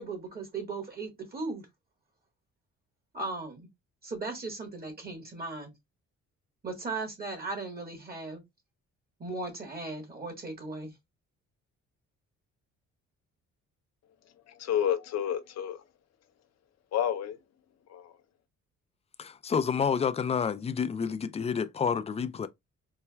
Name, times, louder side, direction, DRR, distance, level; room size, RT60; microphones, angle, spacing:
voice 1, 0.0-1.7 3.1-3.7 4.0-5.7 6.6-8.4 9.2-10.9, right 3 dB, 30° right, 1.3 m, -37 dB
voice 2, 14.5-15.8 16.9-17.4 17.9-18.2, left 9 dB, 60° left, 0.6 m, -30 dB
voice 3, 19.2-22.5, left 6 dB, 20° left, 0.4 m, -29 dB
4.3 x 2.3 x 2.2 m
cardioid pair, 90°, 30 cm